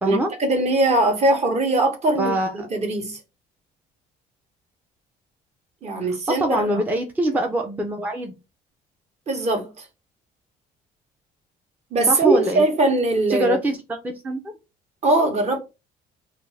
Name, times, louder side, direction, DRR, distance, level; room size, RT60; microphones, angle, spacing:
voice 1, 0.1-2.3 2.7-3.2 5.8-6.7 9.3-9.8 11.9-13.6 15.0-15.6, right 2 dB, 40° right, 0.9 m, -21 dB
voice 2, 2.2-2.7 6.1-8.3 12.1-12.7 13.3-14.4, right 1 dB, 10° right, 0.4 m, -24 dB
2.5 x 2.3 x 3.1 m
cardioid pair, 110°, 17 cm